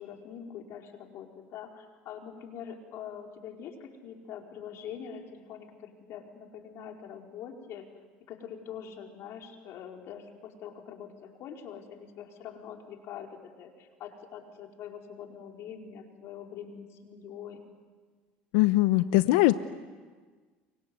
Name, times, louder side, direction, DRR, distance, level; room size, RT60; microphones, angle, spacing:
voice 1, 0.0-7.9 8.3-17.6, left 8 dB, 60° left, 2 dB, 4.7 m, -44 dB
voice 2, 18.5-19.5, left 18 dB, 80° left, 12 dB, 0.8 m, -21 dB
30.0 x 24.5 x 8.0 m, 1.4 s
supercardioid pair, 90°, 5 cm